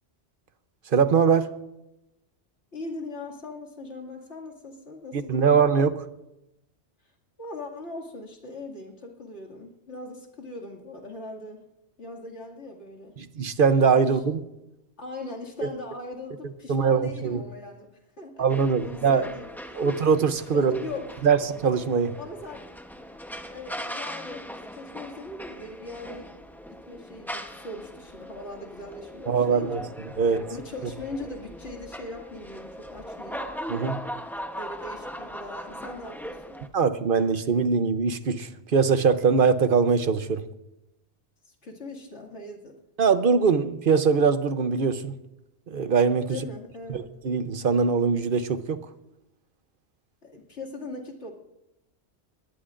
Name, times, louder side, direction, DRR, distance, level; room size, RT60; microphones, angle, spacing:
voice 1, 0.9-1.5 5.1-5.9 13.2-14.4 16.7-17.4 18.4-19.3 19.7-20.8 21.2-22.1 29.3-29.8 30.2-30.4 33.7-34.0 36.7-40.4 43.0-45.1 45.7-46.4 46.9-48.8, right 5 dB, 55° right, 11 dB, 0.9 m, -22 dB
voice 2, 2.7-5.7 7.4-11.6 12.0-13.2 14.1-14.2 15.0-17.9 18.2-18.4 18.8-19.9 20.4-21.4 22.2-22.7 23.4-26.3 26.7-29.9 30.5-33.4 34.5-36.6 41.5-42.8 46.3-47.0 50.2-51.3, left 2 dB, 75° left, -1 dB, 2.7 m, -40 dB
sound 1, 18.5-36.7, equal, ahead, 0.8 m, -40 dB
22.0 x 18.5 x 2.5 m, 0.89 s
omnidirectional pair, 1.2 m